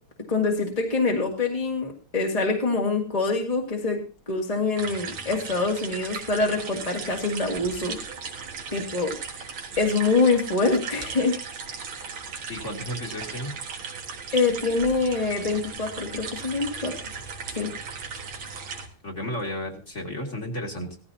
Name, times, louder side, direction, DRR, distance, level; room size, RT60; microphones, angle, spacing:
voice 1, 0.3-4.0 4.3-8.0 8.7-9.2 9.8-11.4 14.3-16.9 17.5-17.7, left 3 dB, 20° left, -1 dB, 1.9 m, -25 dB
sound 1, 4.8-18.9, right 5 dB, 80° right, 2.5 m, -37 dB
voice 2, 12.5-13.5 19.0-20.9, equal, 35° left, 1 dB, 2.6 m, -33 dB
17.0 x 14.0 x 2.8 m, 0.37 s
omnidirectional pair, 2.3 m